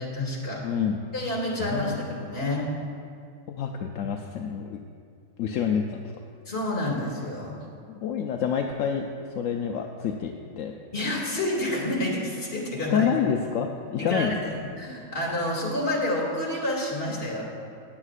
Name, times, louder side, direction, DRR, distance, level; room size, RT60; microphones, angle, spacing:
voice 1, 0.0-0.6 1.1-2.7 6.5-7.5 10.9-13.1 14.0-17.4, left 1 dB, 40° left, -3 dB, 2.4 m, -29 dB
voice 2, 0.6-1.0 1.6-2.1 3.5-4.8 5.4-6.0 7.9-9.1 9.4-10.7 12.9-14.6, left 7 dB, 70° left, 2 dB, 0.9 m, -28 dB
16.0 x 9.7 x 2.5 m, 2.3 s
omnidirectional pair, 1.5 m